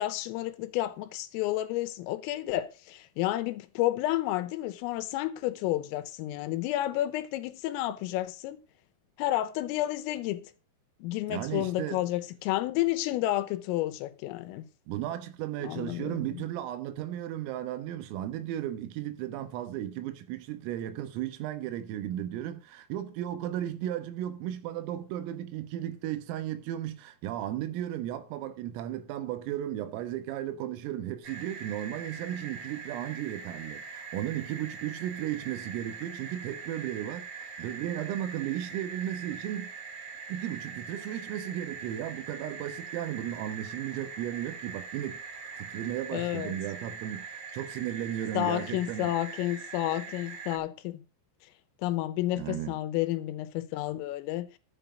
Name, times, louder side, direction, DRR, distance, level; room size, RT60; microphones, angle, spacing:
voice 1, 0.0-8.6 9.2-10.5 11.0-14.7 15.6-16.4 46.1-46.5 48.4-51.1 51.8-54.5, left 15 dB, 85° left, 3.5 m, -31 dB
voice 2, 11.3-12.0 14.9-39.7 40.3-45.2 45.6-49.1 52.4-52.8, right 12 dB, 85° right, 3.8 m, -35 dB
sound 1, 31.2-50.6, right 5 dB, 55° right, 1.8 m, -42 dB
13.0 x 7.9 x 5.1 m
omnidirectional pair, 5.9 m